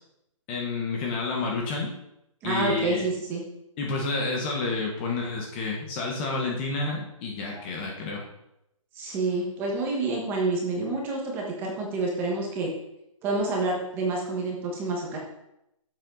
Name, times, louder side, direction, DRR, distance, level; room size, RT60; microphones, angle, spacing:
voice 1, 0.5-1.9 2.4-3.0 3.8-8.2, left 3 dB, 15° left, -1 dB, 1.2 m, -29 dB
voice 2, 2.4-3.4 7.5-7.6 9.0-12.7 13.2-15.2, right 3 dB, 10° right, -1 dB, 1.4 m, -28 dB
10.5 x 7.6 x 3.9 m, 0.84 s
hypercardioid pair, 170°, 18 cm